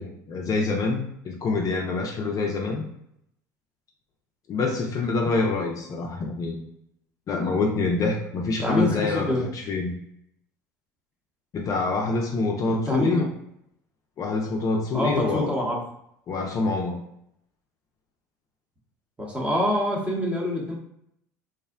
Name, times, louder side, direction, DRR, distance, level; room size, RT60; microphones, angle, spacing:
voice 1, 0.0-2.8 4.5-6.6 7.3-10.0 11.5-13.3 14.2-15.7 16.3-17.0, left 3 dB, 35° left, 1 dB, 0.4 m, -26 dB
voice 2, 8.6-9.5 12.7-13.2 14.9-15.8 19.2-20.8, left 1 dB, 10° right, -2 dB, 0.8 m, -25 dB
2.6 x 2.0 x 2.4 m, 0.75 s
hypercardioid pair, 75°, 10 cm